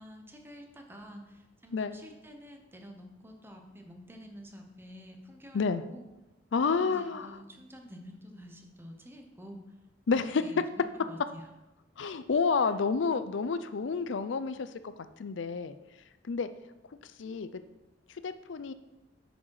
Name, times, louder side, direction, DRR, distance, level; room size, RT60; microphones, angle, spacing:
voice 1, 0.0-6.0 6.6-9.8 10.1-11.5 12.6-12.8, equal, 10° right, 3 dB, 1.0 m, -49 dB
voice 2, 6.5-7.3 10.1-10.4 12.0-14.9 15.2-15.8 16.2-16.5 17.2-17.5 18.2-18.7, left 5 dB, 70° left, 12 dB, 0.5 m, -29 dB
9.0 x 6.2 x 4.8 m, 1.0 s
head